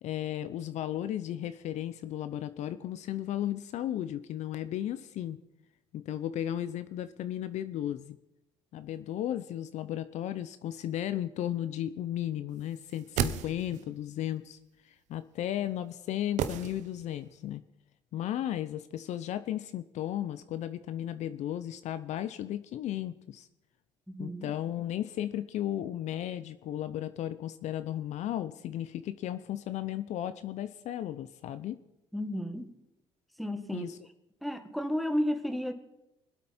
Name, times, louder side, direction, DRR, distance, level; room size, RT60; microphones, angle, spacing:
voice 1, 0.0-5.4 5.9-8.2 8.7-14.6 14.8-17.6 18.1-23.5 24.2-31.8 33.7-34.0, left 11 dB, 65° left, 13 dB, 0.6 m, -35 dB
sound 1, 12.8-14.0 16.4-17.3 17.5-17.6, right 9 dB, 70° right, 0.9 m, -34 dB
voice 2, 24.1-24.5 32.1-32.8 33.4-33.9 34.4-35.7, equal, ahead, 7 dB, 1.6 m, -32 dB
24.5 x 8.4 x 4.3 m, 0.89 s
supercardioid pair, 85°, 13 cm